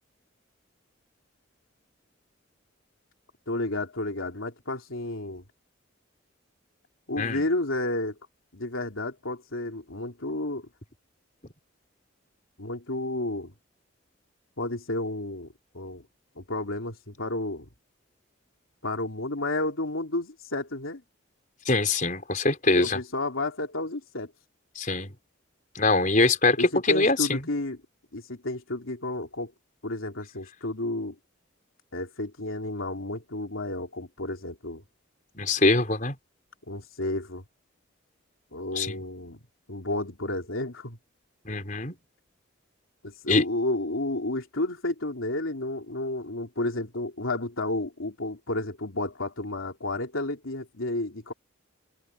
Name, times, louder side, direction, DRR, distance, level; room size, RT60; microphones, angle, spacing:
voice 1, 3.5-5.4 7.1-8.2 8.5-10.7 12.6-13.5 14.6-15.5 15.7-16.0 16.4-17.7 18.8-21.0 22.7-24.3 26.6-27.8 28.1-29.5 29.8-31.2 31.9-34.8 36.7-37.4 38.5-39.4 39.7-41.0 43.0-51.3, left 2 dB, 85° left, 3.3 m, -31 dB
voice 2, 21.6-23.0 24.7-25.1 25.7-27.4 35.3-36.1 38.7-39.0 41.4-41.9 43.3-43.4, left 3 dB, 40° left, 4.9 m, -23 dB
head